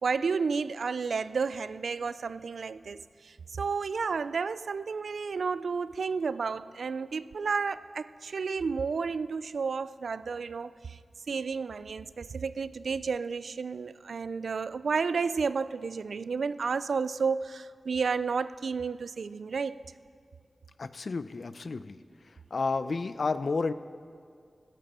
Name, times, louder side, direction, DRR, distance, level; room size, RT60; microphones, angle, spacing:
voice 1, 0.0-11.0 11.3-19.8, right 5 dB, 85° right, 0.3 m, -31 dB
voice 2, 20.8-22.0 22.5-23.7, left 4 dB, 65° left, 0.5 m, -31 dB
16.0 x 14.5 x 4.3 m
wide cardioid pair, 65°, 0 cm